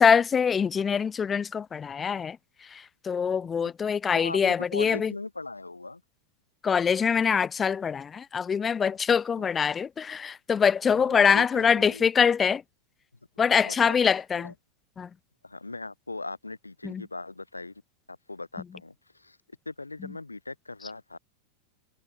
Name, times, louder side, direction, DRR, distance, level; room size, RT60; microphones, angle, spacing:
voice 1, 0.0-5.1 6.6-12.6 13.4-14.5 15.0-15.1 16.8-17.0 20.0-20.1, left 6 dB, 20° left, 0.3 m, -24 dB
voice 2, 4.1-6.0 9.4-9.5 10.9-12.0 13.6-14.0 14.4-14.5 15.4-17.7 18.1-19.4 19.6-21.2, left 3 dB, 80° left, 1.1 m, -39 dB
open air
figure-of-eight pair, 90°, 0 cm